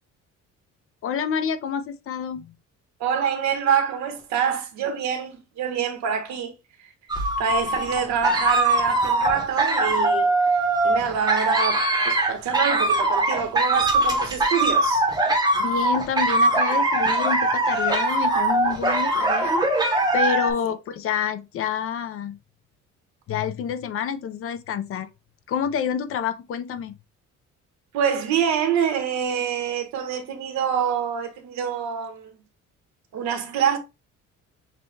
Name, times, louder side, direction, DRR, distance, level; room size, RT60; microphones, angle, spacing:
voice 1, 1.0-2.5 15.6-19.6 20.1-22.4 23.3-25.1 25.5-26.9, left 8 dB, 50° left, 0.5 m, -28 dB
voice 2, 3.0-6.5 6.8-6.9 7.4-15.1 20.6-20.7 27.9-32.4 33.1-33.8, right 7 dB, 70° right, 1.2 m, -26 dB
sound 1, 7.1-20.5, right 2 dB, 15° right, 0.9 m, -22 dB
6.6 x 2.3 x 3.2 m
cardioid pair, 165°, 29 cm